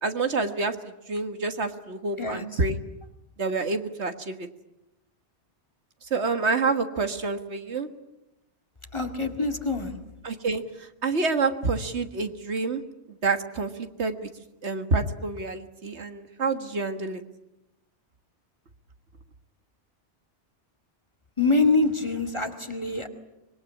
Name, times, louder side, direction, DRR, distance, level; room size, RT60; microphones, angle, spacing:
voice 1, 0.0-2.8 3.4-4.5 6.0-7.9 10.2-12.8 13.2-14.3 14.6-17.2, right 3 dB, 70° right, 8 dB, 1.8 m, -28 dB
voice 2, 8.9-9.9 21.4-23.1, left 3 dB, 25° left, 5 dB, 2.2 m, -25 dB
25.0 x 22.0 x 9.9 m, 0.92 s
omnidirectional pair, 1.2 m